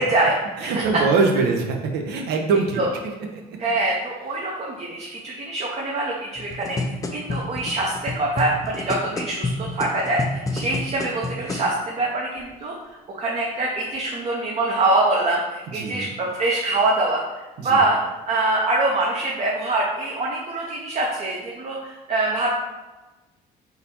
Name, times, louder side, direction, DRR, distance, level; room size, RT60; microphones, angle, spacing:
voice 1, 0.0-0.8 2.8-2.9 3.6-12.7 13.1-18.0 18.3-22.5, right 2 dB, 40° right, -3 dB, 0.7 m, -24 dB
voice 2, 0.6-2.9 3.3-3.6 15.7-16.1 17.6-17.8, right 4 dB, 80° right, 2 dB, 0.8 m, -23 dB
sound 1, 6.4-11.7 12.4-12.5, left 2 dB, 20° left, 0.5 m, -29 dB
4.0 x 2.7 x 4.3 m, 1.1 s
cardioid pair, 110°, 17 cm